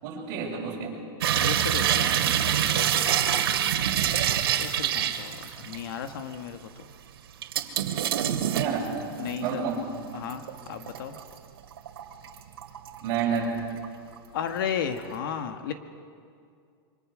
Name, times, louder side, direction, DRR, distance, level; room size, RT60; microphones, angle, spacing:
voice 1, 0.0-1.0 2.0-2.6 8.5-8.9 9.4-9.8 13.0-13.6, right 6 dB, 35° right, -3 dB, 6.3 m, -30 dB
sound 1, 1.2-6.0 6.3-6.4 7.4-9.6 10.0-11.3 11.8-13.0 13.4-13.9 14.2-14.3, right 10 dB, 80° right, 2.2 m, -26 dB
voice 2, 1.3-2.3 2.6-3.5 4.6-6.7 9.2-9.6 10.1-11.2 14.3-15.7, left 8 dB, 65° left, 7 dB, 1.6 m, -34 dB
26.5 x 25.0 x 6.3 m, 2.3 s
supercardioid pair, 170°, 13 cm